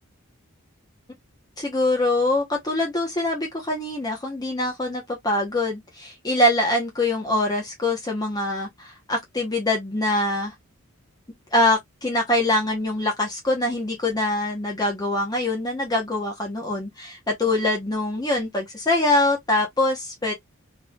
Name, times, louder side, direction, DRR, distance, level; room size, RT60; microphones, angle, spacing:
voice 1, 1.6-10.5 11.5-20.3, left 1 dB, 15° left, 0.9 m, -24 dB
3.5 x 3.4 x 2.3 m
head